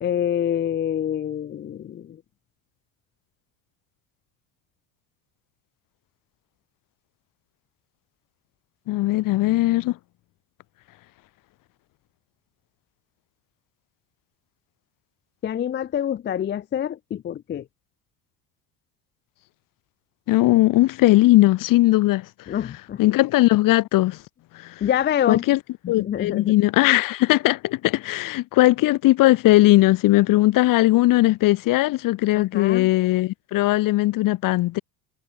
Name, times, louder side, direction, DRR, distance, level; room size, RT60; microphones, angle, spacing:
voice 1, 0.0-2.2 15.4-17.6 22.5-23.0 24.8-25.4 25.8-26.5 32.4-32.9, left 10 dB, 25° left, 0.5 m, -26 dB
voice 2, 8.9-10.0 20.3-22.3 23.0-24.2 24.5-24.7 25.3-25.6 25.9-34.8, left 17 dB, 55° left, 1.2 m, -19 dB
hypercardioid pair, 70°, 40 cm